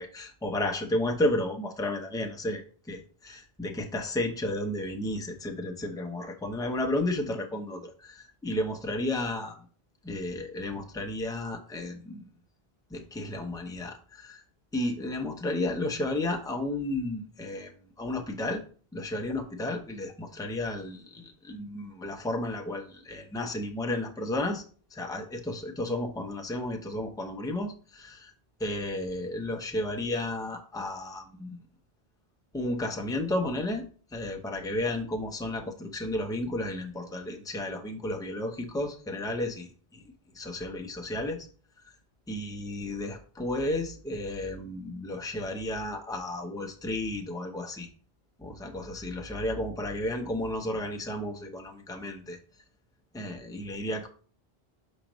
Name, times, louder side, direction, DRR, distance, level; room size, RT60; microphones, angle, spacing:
voice 1, 0.0-9.6 10.0-12.2 12.9-14.4 14.7-17.7 18.0-18.6 18.9-24.6 24.9-28.3 28.6-31.6 32.5-33.9 34.1-40.0 40.3-41.5 42.3-47.9 48.4-52.4 53.1-54.1, left 1 dB, 5° left, 3 dB, 0.6 m, -33 dB
6.3 x 5.0 x 3.0 m, 0.41 s
omnidirectional pair, 1.0 m